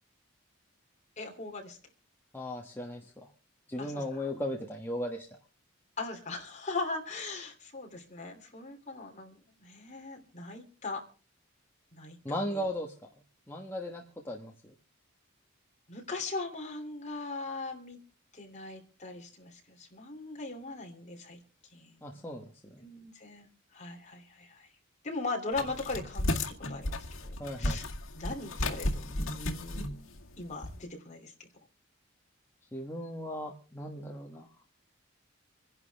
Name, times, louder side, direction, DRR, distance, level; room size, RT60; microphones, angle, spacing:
voice 1, 1.2-1.8 3.8-4.2 6.0-11.0 11.9-12.6 15.9-18.0 18.3-21.4 21.7-22.3 22.8-24.7 25.0-27.1 27.6-27.9 28.1-29.9 30.4-31.3, left 3 dB, 35° left, 2 dB, 3.0 m, -39 dB
voice 2, 2.3-3.1 3.7-5.3 12.2-12.9 13.5-14.7 22.0-22.8 27.4-27.8 32.7-34.5, left 1 dB, 10° left, 0 dB, 1.3 m, -37 dB
sound 1, 25.5-30.8, left 1 dB, 75° left, 2.1 m, -34 dB
26.5 x 11.0 x 3.5 m, 0.37 s
head